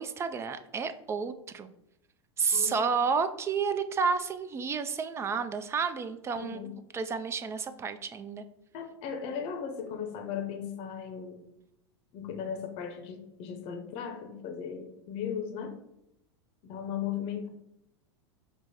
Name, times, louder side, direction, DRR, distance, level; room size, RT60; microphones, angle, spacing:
voice 1, 0.0-1.7 2.4-6.6 6.9-8.4, right 5 dB, 20° right, 9 dB, 0.4 m, -30 dB
voice 2, 2.5-2.9 6.4-6.7 8.7-11.5 12.1-15.7 16.6-17.5, left 7 dB, 45° left, 6 dB, 0.8 m, -37 dB
5.2 x 2.1 x 4.7 m, 0.83 s
hypercardioid pair, 100°, 14 cm